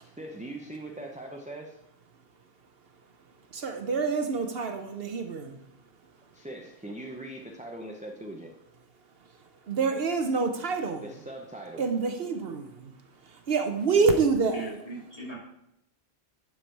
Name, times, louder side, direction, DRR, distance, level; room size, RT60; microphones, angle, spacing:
voice 1, 0.0-1.8 6.3-8.5 11.0-11.8, right 1 dB, 10° right, 1 dB, 0.5 m, -41 dB
voice 2, 3.5-5.6 9.7-11.1 11.8-12.9 13.2-14.7, right 4 dB, 65° right, 5 dB, 1.0 m, -27 dB
voice 3, 14.5-15.4, right 3 dB, 35° left, -6 dB, 2.8 m, -38 dB
11.0 x 4.7 x 4.6 m, 0.82 s
omnidirectional pair, 1.1 m